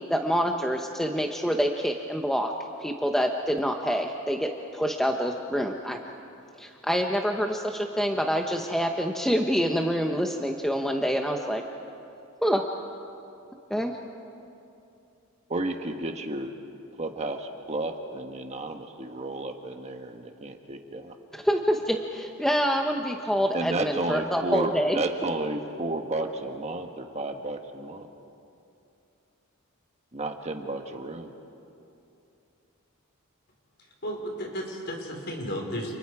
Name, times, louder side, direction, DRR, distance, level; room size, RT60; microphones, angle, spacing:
voice 1, 0.1-2.5 2.8-6.0 6.6-11.6 12.4-12.6 13.7-13.9 21.3-25.0, equal, ahead, 2 dB, 0.9 m, -26 dB
voice 2, 15.5-16.5 17.0-21.1 23.5-28.1 30.1-31.3, right 2 dB, 30° right, 4 dB, 1.3 m, -32 dB
voice 3, 34.0-35.9, equal, 50° left, 1 dB, 4.5 m, -33 dB
30.0 x 29.0 x 4.8 m, 2.7 s
head